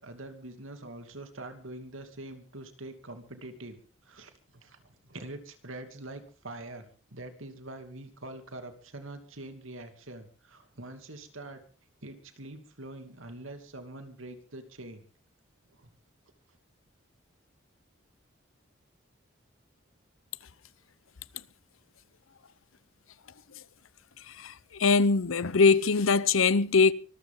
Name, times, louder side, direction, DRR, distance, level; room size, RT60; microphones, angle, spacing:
voice 1, 0.0-3.8 4.0-11.6 12.0-15.0 15.8-15.9, right 2 dB, 80° right, 2.7 m, -44 dB
voice 2, 24.4-26.9, left 4 dB, 85° left, 0.8 m, -22 dB
24.5 x 14.0 x 3.8 m
head